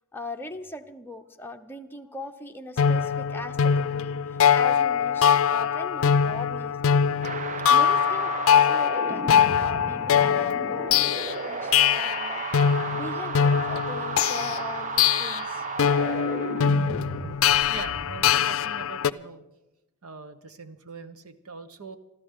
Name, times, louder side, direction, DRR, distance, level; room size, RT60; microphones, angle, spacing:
voice 1, 0.1-6.8 7.7-9.3 9.6-16.0, left 2 dB, 10° left, 4 dB, 0.9 m, -40 dB
sound 1, 2.8-19.1, left 7 dB, 65° left, 0.5 m, -23 dB
sound 2, 7.2-18.2, right 5 dB, 35° right, 0.5 m, -34 dB
voice 2, 17.7-19.4 20.0-22.0, right 4 dB, 90° right, 9 dB, 1.1 m, -42 dB
25.5 x 14.0 x 3.8 m, 0.99 s
head